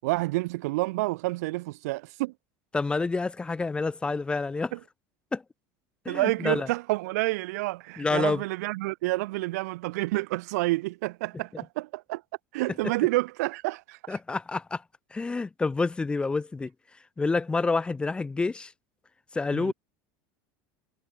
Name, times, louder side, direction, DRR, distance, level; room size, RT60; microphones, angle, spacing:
voice 1, 0.0-2.3 4.7-4.8 6.1-12.2 12.5-14.2 19.5-19.7, right 21 dB, 85° right, 5.7 m, -29 dB
voice 2, 2.7-4.7 5.3-5.4 6.0-6.7 8.0-8.4 14.1-14.8 15.1-16.7 17.2-18.7 19.3-19.7, left 3 dB, 10° left, 2.4 m, -28 dB
cardioid pair, 155°, 8 cm